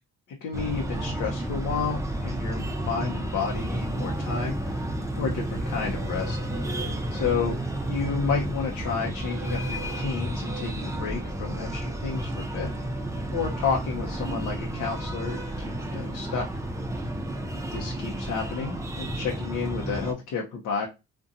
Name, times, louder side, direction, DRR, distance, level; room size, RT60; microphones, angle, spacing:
voice 1, 0.4-4.8 5.1-6.4 7.1-7.6 7.9-12.7 13.3-15.4 15.9-16.4 17.7-20.9, left 5 dB, 75° left, 1 dB, 0.6 m, -31 dB
Breathing, 0.5-20.1, right 1 dB, 10° right, 0.4 m, -31 dB
2.6 x 2.2 x 2.5 m, 0.25 s
cardioid pair, 90°, 30 cm